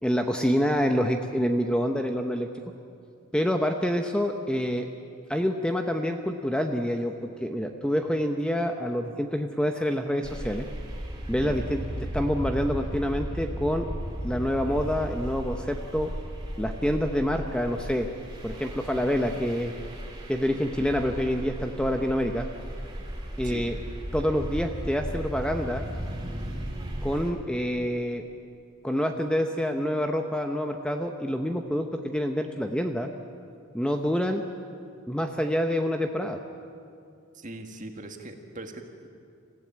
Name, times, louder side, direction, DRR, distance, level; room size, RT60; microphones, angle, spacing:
voice 1, 0.0-2.5 3.3-4.9 5.3-10.7 11.3-11.8 12.1-13.9 14.2-16.1 16.6-18.1 18.4-19.7 20.3-22.5 23.4-23.8 24.1-25.8 27.0-28.2 28.8-33.1 33.7-34.4 35.1-36.4, equal, 5° left, 4 dB, 0.8 m, -27 dB
sound 1, 10.2-27.3, equal, 20° right, 3.4 m, -35 dB
voice 2, 37.3-39.1, right 2 dB, 35° right, 4 dB, 1.8 m, -41 dB
27.5 x 15.5 x 8.8 m, 2.5 s
head